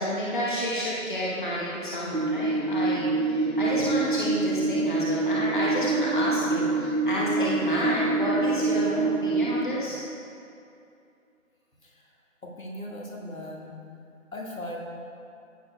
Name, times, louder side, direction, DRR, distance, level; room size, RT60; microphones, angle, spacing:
voice 1, 0.0-10.0, equal, 35° left, -6 dB, 1.1 m, -30 dB
sound 1, 2.1-9.6, right 3 dB, 90° right, 1.7 m, -26 dB
voice 2, 12.4-13.8 14.3-14.8, left 1 dB, 75° left, -2 dB, 2.0 m, -38 dB
15.0 x 6.7 x 2.3 m, 2.6 s
figure-of-eight pair, 165°, 41 cm